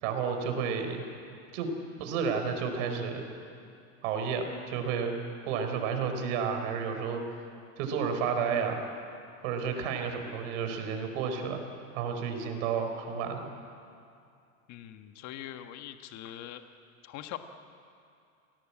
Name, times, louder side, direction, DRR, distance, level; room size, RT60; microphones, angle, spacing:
voice 1, 0.0-1.0 1.5-1.7 2.0-3.2 4.0-7.2 7.8-8.8 9.4-11.6 11.9-13.5, right 6 dB, 60° right, 6 dB, 4.7 m, -31 dB
voice 2, 14.7-16.6 17.0-17.4, left 12 dB, 40° left, 7 dB, 1.5 m, -42 dB
28.0 x 18.5 x 8.7 m, 2.5 s
supercardioid pair, 130°, 41 cm